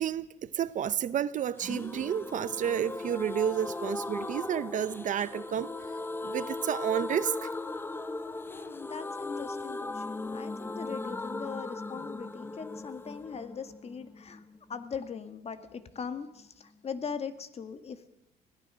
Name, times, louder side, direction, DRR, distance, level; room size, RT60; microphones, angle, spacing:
voice 1, 0.0-5.7 6.2-7.5, right 9 dB, 50° right, 0.8 m, -31 dB
sound 1, 1.6-15.2 15.5-15.6 15.8-15.9, left 2 dB, 15° left, 0.8 m, -38 dB
voice 2, 8.5-14.4 14.7-18.1, left 6 dB, 35° left, 1.8 m, -40 dB
25.0 x 17.5 x 6.3 m
cardioid pair, 110°, 17 cm